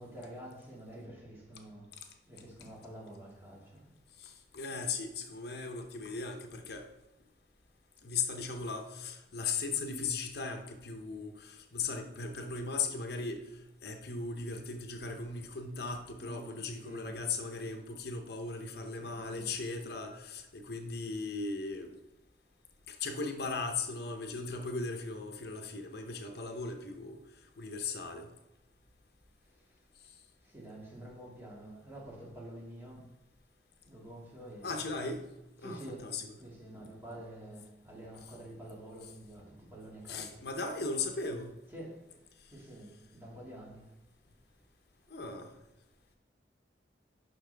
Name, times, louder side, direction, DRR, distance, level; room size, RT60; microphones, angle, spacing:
voice 1, 0.0-1.9 2.3-3.9 16.2-17.2 19.0-19.5 30.5-33.0 33.9-34.7 35.6-36.1 36.4-40.4 41.7-42.0 42.5-43.9, right 1 dB, 15° right, -4 dB, 2.1 m, -48 dB
voice 2, 4.2-6.9 8.0-13.4 13.8-21.9 22.9-27.2 27.6-28.3 34.6-35.2 35.6-36.3 40.1-41.5 45.1-45.5, left 4 dB, 60° left, 4 dB, 0.8 m, -37 dB
10.5 x 6.0 x 3.4 m, 0.96 s
head